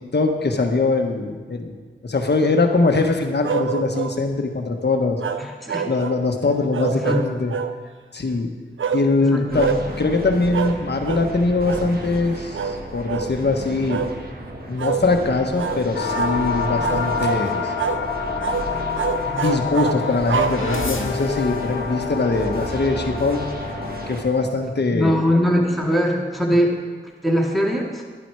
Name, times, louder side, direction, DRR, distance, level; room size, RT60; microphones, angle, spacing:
voice 1, 0.1-1.8 2.0-5.2 5.9-7.5 8.1-8.5 8.9-14.0 14.7-17.7 19.3-23.4 24.1-25.2, left 3 dB, 55° left, 4 dB, 1.4 m, -22 dB
sound 1, 3.4-4.2 5.2-6.2 6.7-7.8 8.8-9.1 9.6-9.8 10.5-10.8 11.0-11.3 11.6-11.9 12.5-12.8 13.1-13.3 13.9-14.1 14.8-15.0 15.6-15.8 16.1-16.4 16.8-17.4 17.8-18.0 18.4-18.7 19.0-21.1, right 6 dB, 70° right, 0.6 m, -26 dB
voice 2, 5.4-5.8 7.0-7.2 9.3-9.6 24.9-26.7 27.2-28.0, equal, ahead, -1 dB, 2.2 m, -21 dB
sound 2, 9.5-24.2, right 1 dB, 50° right, 1.8 m, -34 dB
sound 3, 15.9-24.1, left 5 dB, 75° left, 1.6 m, -27 dB
11.0 x 10.0 x 4.8 m, 1.5 s
cardioid pair, 55°, 21 cm